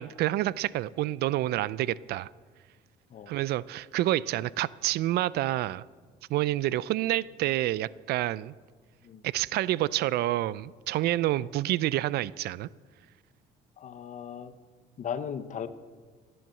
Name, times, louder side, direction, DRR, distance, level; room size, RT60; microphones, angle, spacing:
voice 1, 0.0-2.3 3.3-5.8 6.3-8.5 9.2-12.7, right 15 dB, 70° right, 21 dB, 0.4 m, -28 dB
voice 2, 13.8-14.5 15.0-15.7, left 8 dB, 45° left, 12 dB, 0.9 m, -37 dB
16.5 x 7.8 x 7.6 m, 1.5 s
cardioid pair, 110°, 17 cm